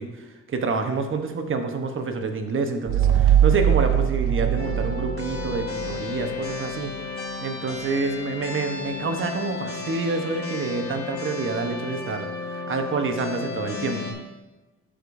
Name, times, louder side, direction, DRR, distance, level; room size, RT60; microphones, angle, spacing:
voice 1, 0.0-6.9 7.4-14.1, right 4 dB, 45° right, 5 dB, 1.0 m, -28 dB
sound 1, 2.9-6.2, right 10 dB, 75° right, 0.5 m, -21 dB
sound 2, 4.6-14.1, left 4 dB, 45° left, 2.2 m, -33 dB
12.0 x 5.1 x 2.6 m, 1.1 s
cardioid pair, 90°, 30 cm